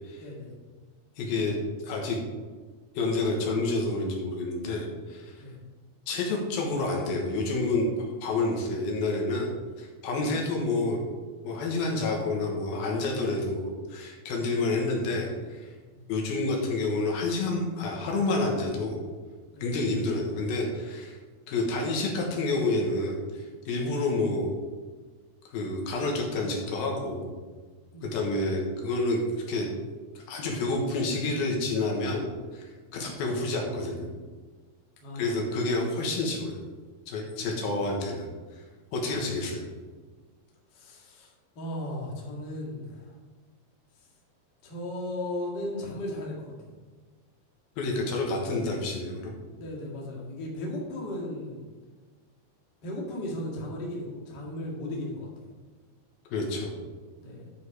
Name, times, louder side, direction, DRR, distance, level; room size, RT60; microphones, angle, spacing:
voice 1, 0.2-0.5 5.4-5.6 10.2-10.3 15.9-16.0 19.5-19.7 27.9-28.1 32.9-33.2 35.0-35.8 37.4-37.8 39.0-39.3 40.7-43.1 44.6-46.5 49.6-51.7 52.8-55.5 57.2-57.5, left 1 dB, 35° left, -3 dB, 1.9 m, -36 dB
voice 2, 1.2-1.6 1.8-2.2 2.9-5.4 6.1-11.0 11.4-15.7 16.1-19.0 19.6-21.2 21.5-24.5 25.5-27.3 28.0-29.2 29.5-29.7 30.2-32.3 32.5-34.1 35.1-36.6 37.1-38.3 38.9-39.6 47.8-49.3 56.3-56.8, left 2 dB, 75° left, 0 dB, 3.1 m, -29 dB
11.0 x 5.2 x 4.8 m, 1.4 s
omnidirectional pair, 4.5 m